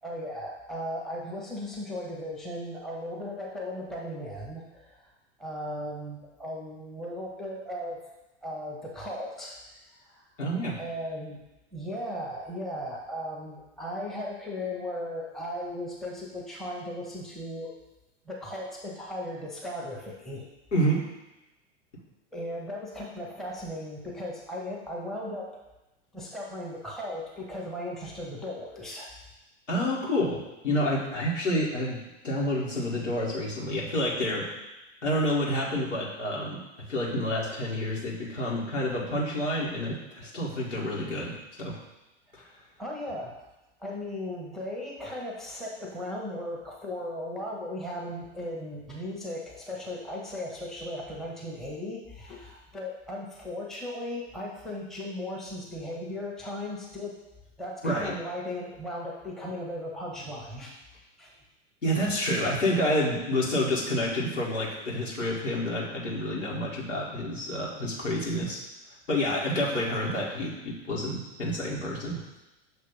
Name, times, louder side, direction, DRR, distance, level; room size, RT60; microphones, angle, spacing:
voice 1, 0.0-5.0 5.4-8.0 8.4-9.6 10.1-10.2 10.8-11.4 11.7-17.7 18.2-20.5 22.3-25.6 26.1-29.1 42.4-42.5 42.8-43.5 43.8-57.2 57.6-60.8 61.2-61.3, left 1 dB, ahead, -4 dB, 1.0 m, -37 dB
voice 2, 10.4-10.8 20.7-21.1 29.7-34.5 35.0-41.8 57.8-58.2 61.8-68.6 69.1-72.2, equal, 80° left, -5 dB, 1.8 m, -29 dB
6.5 x 2.9 x 5.3 m, 0.99 s
figure-of-eight pair, 90°, 37 cm